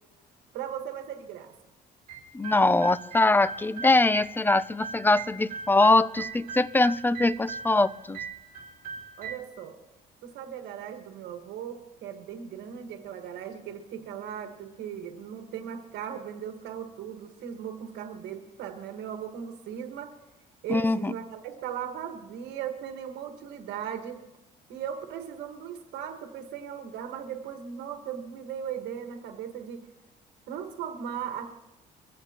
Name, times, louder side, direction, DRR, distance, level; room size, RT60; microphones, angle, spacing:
voice 1, 0.5-1.5 9.2-9.8 10.2-20.1 20.6-24.2 24.7-29.8 30.5-31.5, right 8 dB, 80° right, 5 dB, 1.6 m, -38 dB
sound 1, 2.1-9.3, right 5 dB, 50° right, 3.4 m, -40 dB
voice 2, 2.3-8.2 20.7-21.1, left 2 dB, 10° left, 17 dB, 0.4 m, -22 dB
23.5 x 15.0 x 3.0 m, 1.0 s
cardioid pair, 110°, 17 cm